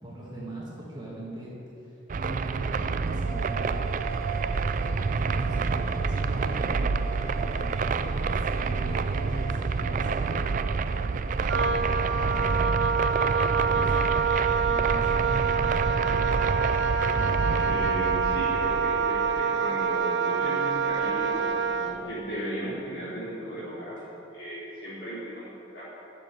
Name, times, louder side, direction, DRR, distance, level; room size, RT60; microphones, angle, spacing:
voice 1, 0.0-1.5 1.8-3.8 5.2-5.7 6.0-7.6 8.4-10.4 11.3-12.1 13.7-15.7, right 1 dB, 20° right, -6 dB, 2.5 m, -41 dB
sound 1, 2.1-19.4, right 4 dB, 40° right, 0.4 m, -28 dB
sound 2, 3.1-12.1, right 7 dB, 50° left, 2.3 m, -41 dB
Wind instrument woodwind instrument, 11.4-22.0, right 6 dB, 70° right, 0.8 m, -26 dB
voice 2, 17.6-24.0 24.3-25.8, equal, 65° left, -12 dB, 3.7 m, -35 dB
12.0 x 7.4 x 9.2 m, 2.9 s
head